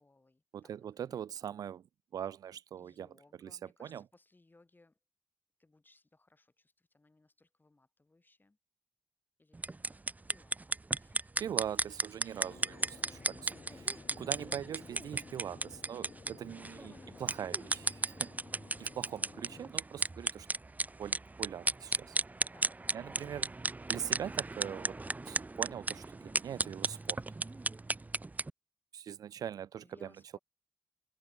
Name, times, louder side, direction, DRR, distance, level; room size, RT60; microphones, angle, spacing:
voice 1, 0.0-1.2 2.8-5.0 5.6-8.6 9.4-11.3 16.7-17.8 18.4-18.9 22.4-23.5 29.8-30.4, left 2 dB, 30° left, 6.5 m, -65 dB
voice 2, 0.5-1.8 2.1-3.2 3.4-4.0 11.4-16.9 17.2-18.3 18.8-20.5 21.0-22.2 22.9-23.5 23.9-25.0 25.3-27.2 28.9-30.1, right 9 dB, 85° right, 0.4 m, -42 dB
sound 1, 9.5-28.5, right 3 dB, 25° right, 0.5 m, -35 dB
sound 2, 12.4-19.7, left 4 dB, 55° left, 3.0 m, -54 dB
cardioid pair, 45°, 6 cm